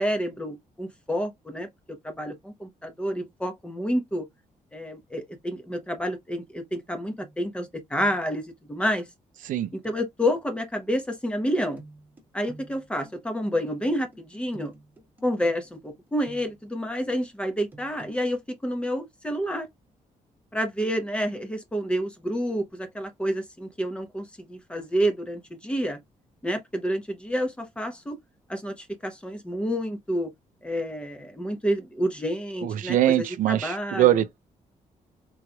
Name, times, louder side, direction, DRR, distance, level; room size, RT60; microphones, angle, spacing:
voice 1, 0.0-4.2 4.7-9.1 9.7-11.8 12.3-14.7 15.2-19.7 20.5-26.0 26.4-28.2 28.5-30.3 30.6-34.2, equal, 10° left, 0.8 m, -29 dB
sound 1, 7.2-7.7 8.0-8.4 9.8-10.0 11.8-16.8 17.7-18.2, right 2 dB, 15° right, 1.2 m, -49 dB
voice 2, 32.6-34.4, right 13 dB, 75° right, 0.5 m, -23 dB
3.8 x 3.1 x 2.2 m
cardioid pair, 160°, 14 cm